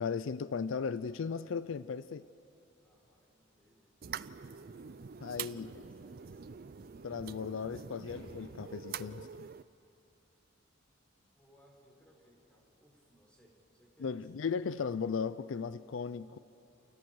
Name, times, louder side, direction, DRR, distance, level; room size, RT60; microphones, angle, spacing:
voice 1, 0.0-2.3 5.2-5.7 7.0-9.5 14.0-16.4, left 5 dB, 70° left, 15 dB, 0.4 m, -36 dB
voice 2, 2.8-3.9 4.5-4.8 5.2-6.6 11.2-14.3, equal, 5° left, -3 dB, 5.5 m, -64 dB
sound 1, 4.0-9.6, right 7 dB, 50° right, 0.4 m, -45 dB
sound 2, 8.0-9.0, equal, 25° left, 5.9 m, -55 dB
29.0 x 28.5 x 4.8 m, 3.0 s
head